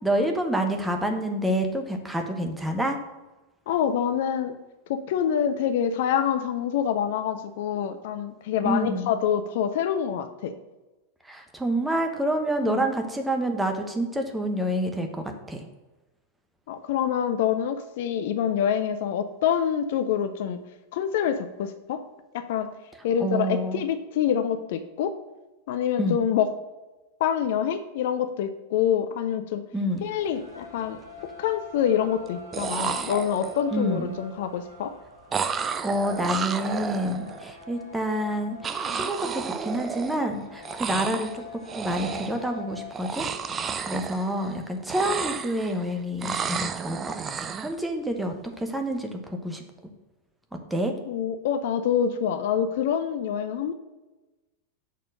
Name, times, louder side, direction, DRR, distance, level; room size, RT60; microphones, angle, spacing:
voice 1, 0.0-3.0 8.6-9.1 11.2-15.7 23.2-23.8 26.0-26.2 29.7-30.1 33.7-34.1 35.8-43.3 43.6-49.6 50.7-50.9, right 1 dB, 5° right, 4 dB, 1.0 m, -28 dB
voice 2, 3.7-4.5 4.9-10.5 12.6-12.8 16.7-20.6 20.9-22.0 22.3-22.7 23.0-25.1 25.7-26.5 27.2-29.6 30.0-31.0 31.4-34.9 51.1-53.7, left 8 dB, 55° left, 9 dB, 0.5 m, -26 dB
sound 1, 30.1-42.9, left 3 dB, 85° left, 2.0 m, -45 dB
sound 2, 30.1-30.3 30.6-31.2 32.3-32.4 32.5-33.7 35.3-37.5 38.6-40.4 40.6-41.4 41.7-42.5 42.9-44.6 44.8-45.8 46.2-47.7, right 6 dB, 20° right, 0.5 m, -32 dB
6.4 x 4.2 x 6.5 m, 1.1 s
figure-of-eight pair, 90°, 0 cm